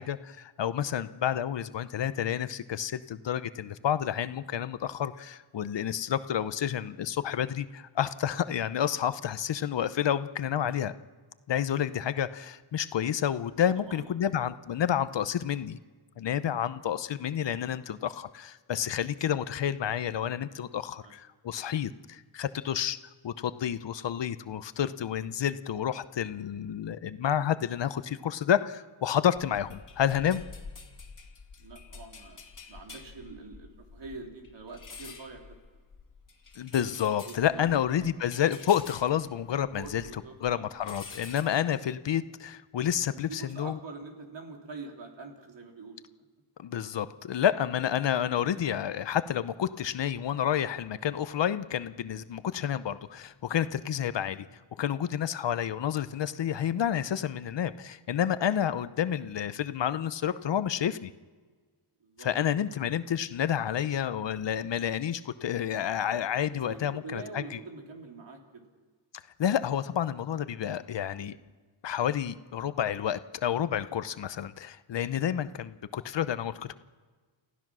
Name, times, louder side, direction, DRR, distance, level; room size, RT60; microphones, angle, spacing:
voice 1, 0.0-10.9 11.5-15.8 16.2-30.4 36.6-40.0 40.4-43.8 46.6-54.5 54.8-61.1 62.2-67.6 69.4-71.4 71.8-76.7, left 9 dB, 60° left, 14 dB, 0.8 m, -30 dB
voice 2, 13.7-14.3 21.0-21.1 31.6-32.4 32.7-35.6 37.2-38.1 39.7-40.9 43.1-46.0 62.0-62.3 66.7-68.6, right 3 dB, 60° right, 2 dB, 3.4 m, -45 dB
sound 1, 29.3-40.2 40.4-41.4, left 4 dB, 40° left, 2.5 m, -48 dB
29.5 x 15.0 x 6.2 m, 1.4 s
wide cardioid pair, 120°, 49 cm